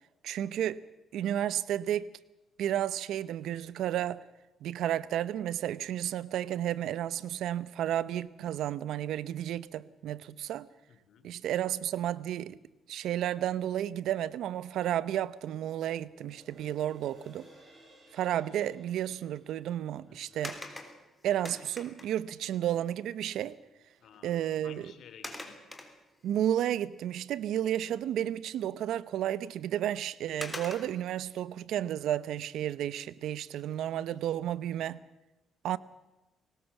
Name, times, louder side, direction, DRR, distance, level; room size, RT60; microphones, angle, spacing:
voice 1, 0.2-0.8 1.1-2.1 2.6-4.2 4.6-10.7 11.2-12.6 12.9-17.5 18.1-20.6 21.2-23.6 24.2-24.8 26.2-35.0 35.6-35.8, right 11 dB, 80° right, 0.8 m, -32 dB
voice 2, 10.9-11.3 20.1-20.6 24.0-25.6, left 8 dB, 70° left, 2.9 m, -54 dB
sound 1, 15.9-22.5 23.0-23.1, right 1 dB, 25° right, 7.9 m, -60 dB
sound 2, 20.4-22.3 23.5-23.6 24.0-24.2 25.2-26.4 26.9-27.0 29.4-29.5 30.4-31.2 33.4-33.8 34.3-34.4, left 1 dB, 10° left, 3.4 m, -43 dB
21.0 x 19.0 x 7.2 m
cardioid pair, 90°, 0 cm